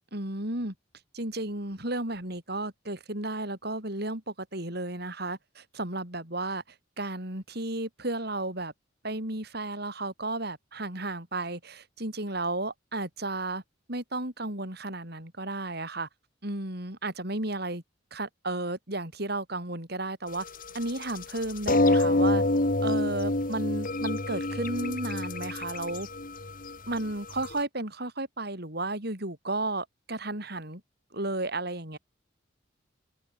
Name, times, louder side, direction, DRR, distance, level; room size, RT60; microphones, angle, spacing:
voice 1, 0.1-0.7 1.1-6.6 7.0-8.7 9.0-13.6 13.9-16.1 16.4-17.8 18.1-20.4 20.7-22.4 22.8-26.1 26.9-30.8 31.1-32.0, right 2 dB, 55° right, 6.7 m, -33 dB
sound 1, 20.4-27.5, left 2 dB, 45° left, 2.0 m, -27 dB
open air
head